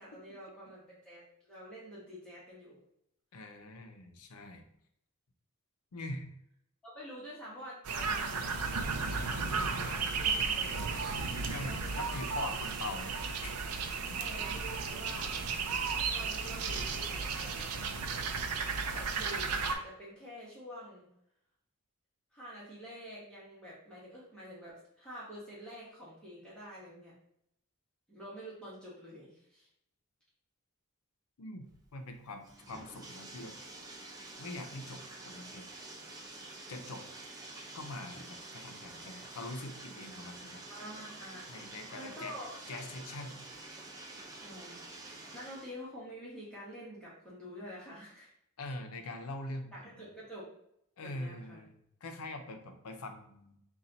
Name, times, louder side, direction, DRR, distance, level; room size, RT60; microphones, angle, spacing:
voice 1, 0.0-2.8 6.8-10.9 11.6-12.1 12.5-12.6 14.1-15.4 16.1-17.9 18.9-21.1 22.3-27.1 28.1-29.7 38.1-38.2 40.7-42.7 44.4-48.3 49.7-50.4 51.0-51.6, equal, 5° left, -8 dB, 1.0 m, -48 dB
voice 2, 3.3-4.6 5.9-6.3 11.4-13.5 14.1-14.2 31.4-33.6 34.4-35.7 36.7-37.0 37.7-40.6 41.5-42.4 42.7-43.4 48.6-49.9 51.0-51.7 52.0-53.6, left 2 dB, 85° left, 6 dB, 0.6 m, -43 dB
sound 1, 7.8-19.7, right 5 dB, 90° right, 0.5 m, -34 dB
Bathtub (filling or washing), 31.7-45.7, right 2 dB, 15° right, 0.5 m, -48 dB
4.2 x 2.3 x 3.8 m, 0.74 s
head